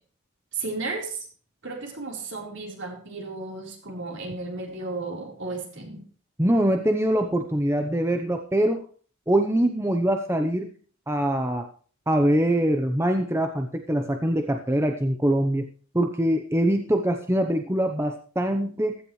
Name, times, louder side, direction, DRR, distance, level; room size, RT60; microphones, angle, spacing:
voice 1, 0.5-1.3 1.6-6.0, right 3 dB, 60° right, 1 dB, 4.1 m, -34 dB
voice 2, 6.4-8.8 9.3-10.7 11.1-11.7 12.1-15.7 15.9-19.0, right 1 dB, 10° right, 5 dB, 0.9 m, -23 dB
15.5 x 13.0 x 3.2 m, 0.41 s
head